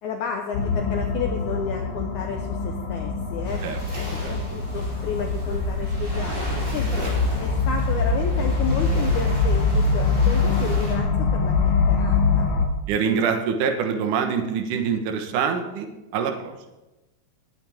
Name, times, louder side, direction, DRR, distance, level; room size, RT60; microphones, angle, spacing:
voice 1, 0.0-3.6 4.2-7.0 7.4-12.5, left 6 dB, 85° left, 3 dB, 1.7 m, -32 dB
sound 1, 0.5-12.7, left 4 dB, 55° left, 2.6 m, -23 dB
Waves surf, 3.4-10.9, equal, 20° right, 4.2 m, -36 dB
voice 2, 12.9-16.5, right 6 dB, 65° right, 4 dB, 2.3 m, -25 dB
20.0 x 8.9 x 3.6 m, 1.0 s
omnidirectional pair, 4.7 m